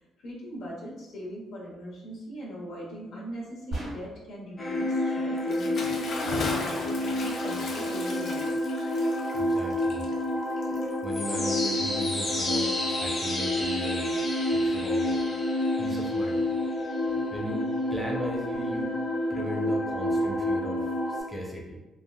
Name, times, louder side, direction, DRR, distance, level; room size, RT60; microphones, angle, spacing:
voice 1, 0.2-8.7 17.0-17.1, equal, 80° left, -4 dB, 1.0 m, -40 dB
sound 1, 3.7-4.4, right 1 dB, 70° right, 1.4 m, -36 dB
sound 2, 4.6-21.2, left 1 dB, 40° left, 1.2 m, -28 dB
Bathtub (filling or washing) / Splash splatter, 5.4-11.3, left 2 dB, 65° left, 0.5 m, -37 dB
voice 2, 9.3-10.0 11.0-14.2 14.5-15.2 15.8-16.4 17.3-18.9 19.3-21.8, equal, ahead, -3 dB, 0.8 m, -36 dB
3.8 x 2.3 x 2.2 m, 1.1 s
cardioid pair, 90°, 0 cm